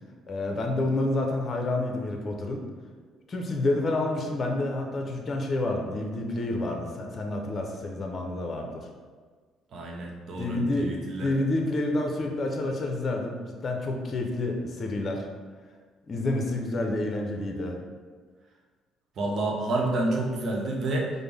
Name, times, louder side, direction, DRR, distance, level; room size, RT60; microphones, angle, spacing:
voice 1, 0.3-2.6 3.3-8.9 10.4-15.3 16.1-17.8, left 2 dB, 45° left, 2 dB, 0.6 m, -29 dB
voice 2, 9.7-11.3 19.2-21.1, right 2 dB, 60° right, -1 dB, 0.8 m, -29 dB
5.0 x 2.1 x 3.4 m, 1.5 s
supercardioid pair, 60°, 0 cm